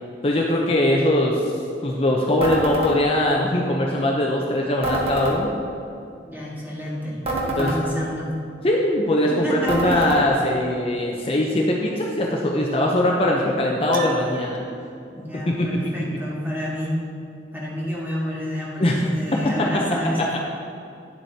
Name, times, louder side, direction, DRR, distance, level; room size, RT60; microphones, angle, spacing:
voice 1, 0.2-1.5 1.8-5.5 7.6-7.7 8.6-14.6 15.3-15.8 18.8-19.0 19.3-19.7 20.2-20.3, left 1 dB, 35° left, -1 dB, 0.6 m, -21 dB
sound 1, 2.4-2.9 4.8-5.4 7.2-7.8 9.7-10.2, right 1 dB, 35° right, 1.2 m, -25 dB
voice 2, 6.2-7.2 7.4-8.3 9.3-10.1 15.1-17.0 17.5-20.4, equal, 10° right, -6 dB, 1.6 m, -29 dB
Piano, 13.9-14.8, right 6 dB, 50° right, 0.5 m, -34 dB
10.5 x 7.5 x 2.8 m, 2.6 s
head